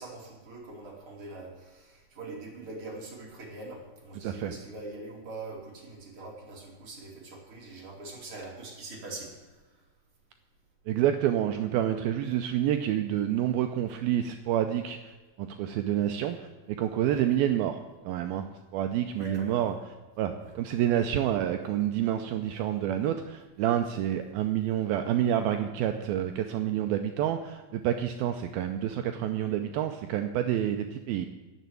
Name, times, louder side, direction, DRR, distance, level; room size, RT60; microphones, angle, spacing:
voice 1, 0.0-9.3 17.1-17.2 19.1-19.7 20.4-20.5, right 2 dB, 35° right, -2 dB, 3.1 m, -43 dB
voice 2, 10.9-18.5 18.7-19.7 20.2-31.3, right 11 dB, 90° right, 7 dB, 2.1 m, -28 dB
11.0 x 7.3 x 9.4 m, 1.3 s
omnidirectional pair, 5.0 m